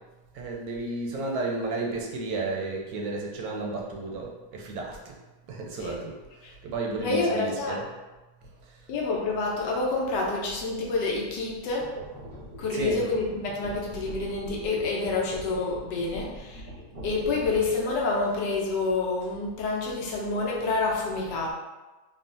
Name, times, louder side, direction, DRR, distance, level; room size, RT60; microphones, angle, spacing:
voice 1, 0.3-5.1 5.5-6.1 6.6-7.8 12.7-13.1, right 3 dB, 70° right, -1 dB, 0.9 m, -32 dB
voice 2, 7.0-7.8 8.9-11.9 12.6-16.6 17.0-21.5, left 3 dB, 80° left, -2 dB, 1.3 m, -28 dB
sound 1, 11.8-17.9, equal, 25° right, 0.5 m, -43 dB
3.7 x 2.1 x 2.5 m, 1.1 s
omnidirectional pair, 1.9 m